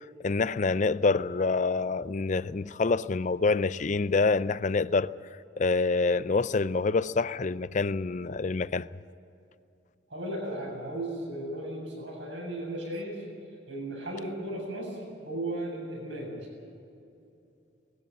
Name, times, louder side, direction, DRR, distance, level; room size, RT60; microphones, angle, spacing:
voice 1, 0.2-5.1 5.6-8.9, left 4 dB, 40° left, 0.5 m, -26 dB
voice 2, 10.1-13.2 13.7-16.3, right 1 dB, 75° right, 7.5 m, -35 dB
20.0 x 16.0 x 9.3 m
head